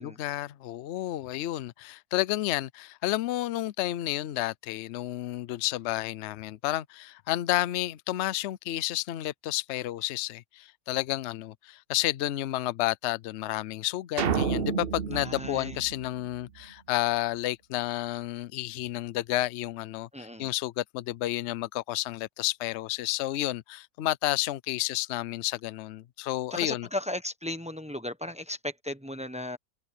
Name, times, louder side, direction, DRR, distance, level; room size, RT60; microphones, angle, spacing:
voice 1, 0.0-26.9, left 15 dB, 65° left, 0.7 m, -31 dB
sound 1, 14.2-16.6, right 7 dB, 50° right, 0.7 m, -30 dB
voice 2, 15.1-15.8 20.1-20.5 26.5-29.6, left 1 dB, 5° right, 0.9 m, -36 dB
omnidirectional pair, 1.7 m